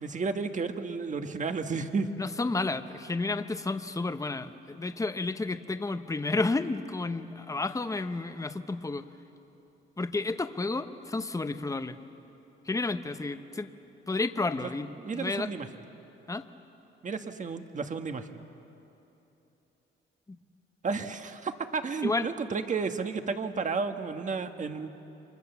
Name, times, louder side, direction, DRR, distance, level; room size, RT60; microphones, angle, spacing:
voice 1, 0.0-2.1 14.6-14.7 15.0-15.7 17.0-18.4 20.8-24.9, right 4 dB, 40° right, 7 dB, 1.6 m, -32 dB
voice 2, 2.2-9.1 10.0-12.0 12.6-13.7 14.1-15.5 16.3-16.4 20.3-20.4 22.0-22.3, left 3 dB, 15° left, 9 dB, 1.0 m, -31 dB
29.5 x 24.0 x 7.1 m, 3.0 s
cardioid pair, 90°, 20 cm